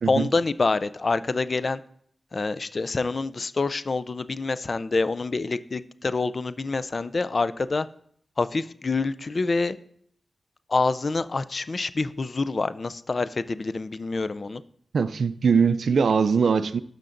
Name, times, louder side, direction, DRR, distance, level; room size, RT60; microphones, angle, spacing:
voice 1, 0.1-1.8 2.3-7.9 8.4-9.8 10.7-14.6, left 3 dB, 50° left, 0.4 m, -26 dB
voice 2, 14.9-16.8, right 5 dB, 80° right, 0.3 m, -21 dB
12.0 x 6.5 x 2.6 m
cardioid pair, 65°, 0 cm